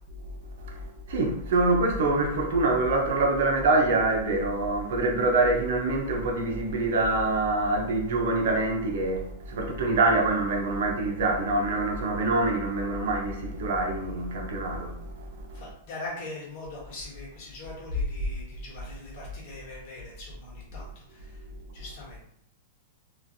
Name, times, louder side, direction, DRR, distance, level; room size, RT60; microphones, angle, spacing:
voice 1, 0.6-15.3, right 2 dB, 65° right, 0.6 m, -25 dB
voice 2, 15.5-21.4 21.7-22.3, left 2 dB, 40° left, 1.3 m, -42 dB
3.0 x 2.4 x 2.6 m
supercardioid pair, 165°, 0 cm